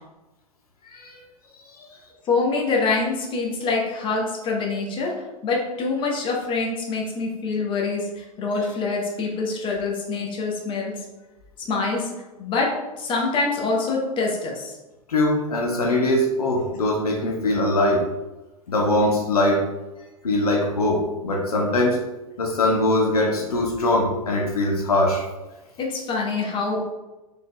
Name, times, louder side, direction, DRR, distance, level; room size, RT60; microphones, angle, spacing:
voice 1, 2.3-10.9 11.6-12.1 12.4-14.8 25.8-26.9, left 3 dB, 25° left, -1 dB, 0.8 m, -25 dB
voice 2, 15.1-18.0 18.7-19.6 20.2-22.0 22.4-25.3, left 1 dB, 75° left, 0 dB, 0.7 m, -21 dB
3.9 x 3.5 x 2.2 m, 1.1 s
figure-of-eight pair, 95°, 19 cm